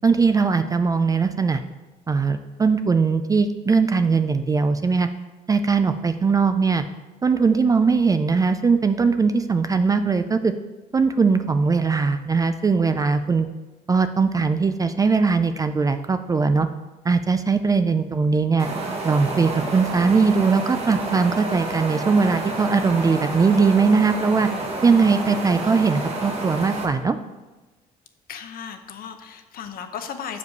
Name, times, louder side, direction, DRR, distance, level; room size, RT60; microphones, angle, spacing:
voice 1, 0.0-1.6 2.1-5.1 5.5-6.8 7.2-10.5 10.9-13.5 13.9-16.7 17.0-18.7 19.0-24.5 24.8-27.2, right 4 dB, 20° right, 10 dB, 0.4 m, -20 dB
sound 1, 18.6-26.9, right 2 dB, 40° right, 1.4 m, -29 dB
voice 2, 28.3-30.4, left 7 dB, 60° left, 7 dB, 0.8 m, -35 dB
6.4 x 5.0 x 5.3 m, 1.2 s
cardioid pair, 110°, 17 cm